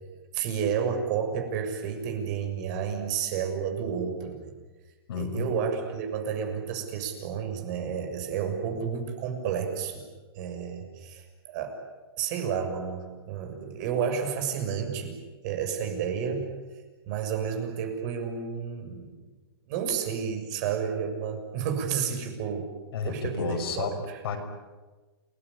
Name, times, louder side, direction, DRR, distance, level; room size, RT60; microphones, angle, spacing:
voice 1, 0.3-4.5 5.1-10.0 10.3-11.8 12.2-16.5 17.1-19.2 19.7-22.7 23.0-24.2, right 7 dB, 45° right, 4 dB, 6.7 m, -31 dB
voice 2, 5.1-5.5 22.9-24.0 24.2-24.4, left 5 dB, 70° left, 4 dB, 6.4 m, -31 dB
29.0 x 20.0 x 10.0 m, 1.3 s
hypercardioid pair, 145°, 13 cm